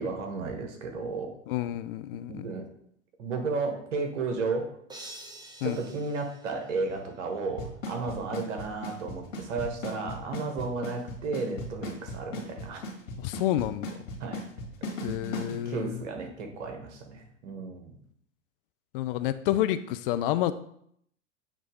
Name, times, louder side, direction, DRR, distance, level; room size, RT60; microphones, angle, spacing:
voice 1, 0.0-1.3 2.3-2.7 3.2-4.8 5.6-12.8 14.2-14.4 15.0-17.9, right 4 dB, 60° right, 4 dB, 1.4 m, -33 dB
voice 2, 1.5-2.5 5.6-5.8 13.2-13.9 15.0-16.0 18.9-20.5, left 13 dB, 45° left, 12 dB, 0.4 m, -29 dB
sound 1, 4.9-7.2, right 1 dB, 10° right, 1.0 m, -47 dB
Drum kit / Snare drum / Bass drum, 7.6-15.5, left 2 dB, 70° left, 1.9 m, -36 dB
7.2 x 3.2 x 5.1 m, 0.69 s
figure-of-eight pair, 90°, 39 cm